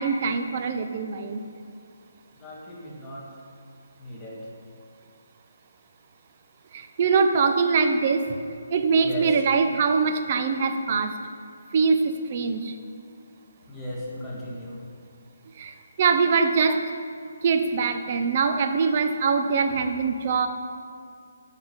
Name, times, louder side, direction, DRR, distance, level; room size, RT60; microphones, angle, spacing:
voice 1, 0.0-1.4 6.7-8.3 8.7-11.1 11.7-12.7 15.6-16.8 17.4-20.5, right 5 dB, 35° right, 7 dB, 0.8 m, -23 dB
voice 2, 2.4-3.4 4.0-4.5 9.0-9.4 13.7-14.8, left 1 dB, 10° left, -6 dB, 1.8 m, -36 dB
9.6 x 5.9 x 7.3 m, 2.2 s
hypercardioid pair, 165°, 0 cm